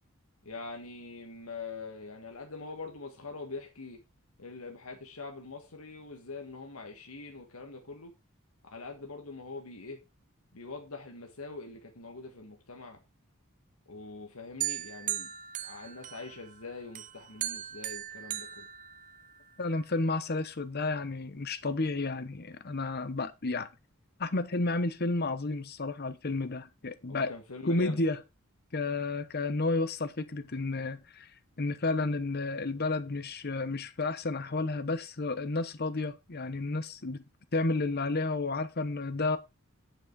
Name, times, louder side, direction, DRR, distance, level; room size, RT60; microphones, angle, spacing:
voice 1, 0.5-4.0 4.4-8.1 8.7-10.0 10.5-13.0 13.9-15.3 15.6-18.7 27.1-28.0, left 3 dB, 80° left, 1.7 m, -43 dB
sound 1, 14.6-16.5 17.0-19.5, right 12 dB, 35° right, 0.6 m, -38 dB
voice 2, 19.6-23.7 24.2-27.3 27.6-28.2 28.7-31.3 31.6-37.2 37.5-39.4, left 3 dB, 45° left, 0.9 m, -31 dB
9.7 x 6.1 x 4.6 m
head